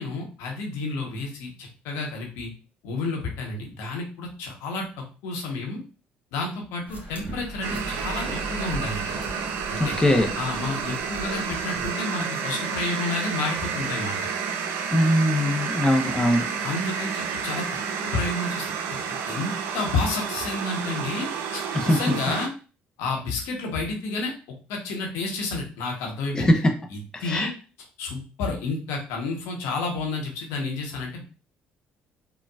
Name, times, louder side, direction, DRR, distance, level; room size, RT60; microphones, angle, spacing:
voice 1, 0.0-2.5 2.8-5.8 6.3-9.1 9.7-10.0 10.3-14.3 16.6-17.7 18.0-22.5 23.0-24.3 24.7-26.6 26.9-27.5 28.0-31.2, left 3 dB, 80° left, 1 dB, 0.9 m, -30 dB
sound 1, 6.9-11.9, right 2 dB, 40° right, 1.4 m, -39 dB
sound 2, 7.6-22.5, right 6 dB, 70° right, 0.4 m, -30 dB
voice 2, 9.8-10.3 14.9-16.4 21.7-22.0 26.3-26.7 27.1-27.5, left 1 dB, 15° left, 3 dB, 0.6 m, -21 dB
3.9 x 2.2 x 2.2 m, 0.34 s
supercardioid pair, 65°, 4 cm